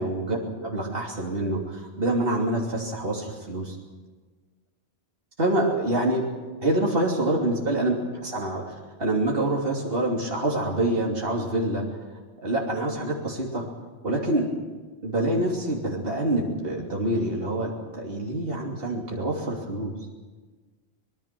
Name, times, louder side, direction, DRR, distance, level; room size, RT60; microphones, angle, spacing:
voice 1, 0.0-3.8 5.4-6.3 6.6-7.9 8.2-11.8 12.4-13.7 14.0-14.6 15.0-19.9, right 1 dB, 60° right, -2 dB, 3.3 m, -26 dB
25.0 x 21.5 x 6.1 m, 1.3 s
omnidirectional pair, 1.1 m